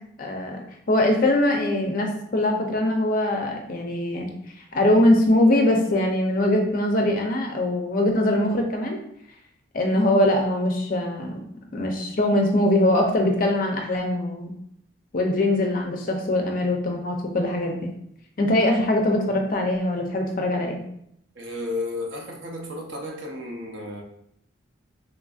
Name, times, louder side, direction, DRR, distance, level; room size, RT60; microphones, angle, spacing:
voice 1, 0.2-4.3 4.7-9.0 9.7-11.3 11.7-14.5 15.1-17.8 18.4-20.8, left 1 dB, 40° left, 2 dB, 0.5 m, -22 dB
voice 2, 21.3-24.0, left 2 dB, 65° right, 0 dB, 0.6 m, -33 dB
3.7 x 2.5 x 2.3 m, 0.72 s
head